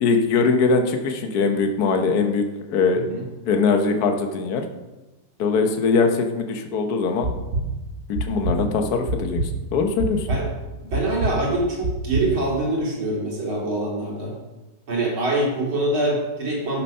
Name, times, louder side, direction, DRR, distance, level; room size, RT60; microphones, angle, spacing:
voice 1, 0.0-3.0 3.5-4.6 5.4-7.3 8.1-9.4 9.7-10.3, left 4 dB, 55° left, 5 dB, 1.4 m, -21 dB
sound 1, 7.2-7.6 8.1-8.6 9.1-9.5 10.0-10.4 10.9-11.3 11.8-12.2, right 2 dB, 45° right, 2.3 m, -24 dB
voice 2, 10.8-14.3 14.9-16.8, right 2 dB, 90° right, -3 dB, 3.7 m, -24 dB
12.0 x 7.3 x 5.5 m, 1.1 s
omnidirectional pair, 2.2 m